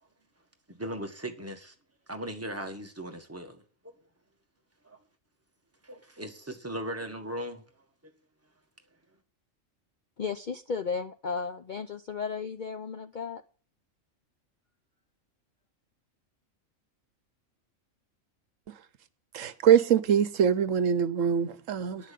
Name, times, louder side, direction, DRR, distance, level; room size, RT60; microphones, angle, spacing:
voice 1, 0.7-1.7 2.1-3.6 4.8-5.0 5.8-7.6 22.0-22.1, right 1 dB, 10° right, 1.4 m, -38 dB
voice 2, 10.2-13.4, left 5 dB, 50° left, 0.6 m, -34 dB
voice 3, 19.3-22.0, right 8 dB, 75° right, 1.2 m, -23 dB
10.5 x 5.8 x 8.4 m
omnidirectional pair, 1.4 m